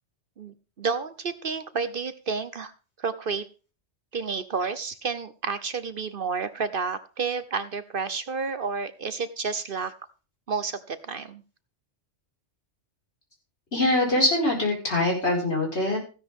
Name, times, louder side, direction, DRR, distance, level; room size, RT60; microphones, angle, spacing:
voice 1, 0.4-2.7 3.0-3.5 4.1-9.9 10.5-11.4, right 5 dB, 55° right, 13 dB, 1.0 m, -30 dB
voice 2, 13.7-16.0, left 2 dB, 70° left, -1 dB, 5.4 m, -23 dB
15.5 x 10.5 x 3.6 m, 0.34 s
omnidirectional pair, 1.2 m